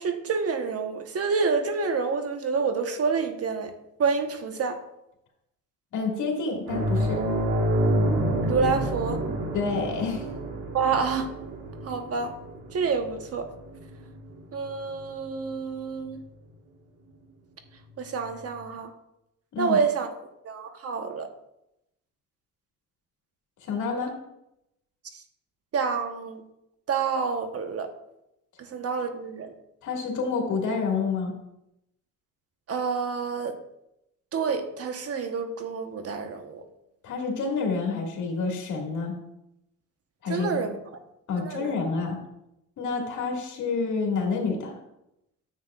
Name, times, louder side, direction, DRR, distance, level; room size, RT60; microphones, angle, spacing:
voice 1, 0.0-3.7 4.0-4.8 8.4-9.2 10.7-11.3 11.8-12.3 12.7-13.5 14.5-16.2 18.0-18.9 19.6-20.1 20.4-21.3 25.1-25.2 25.7-26.4 26.9-27.9 28.6-29.5 32.7-33.6 34.3-36.6 40.3-40.8 41.4-41.8, right 5 dB, 50° right, 6 dB, 1.1 m, -28 dB
voice 2, 5.9-7.2 9.5-10.3 19.5-19.8 23.6-24.2 29.8-31.4 37.0-39.1 40.2-40.6 41.3-42.2 42.8-44.7, left 4 dB, 75° left, 0 dB, 2.1 m, -28 dB
sound 1, 6.7-15.6 15.9-16.1 18.2-18.3, right 1 dB, 90° right, 1.6 m, -29 dB
9.7 x 7.7 x 2.4 m, 0.85 s
cardioid pair, 90°, 30 cm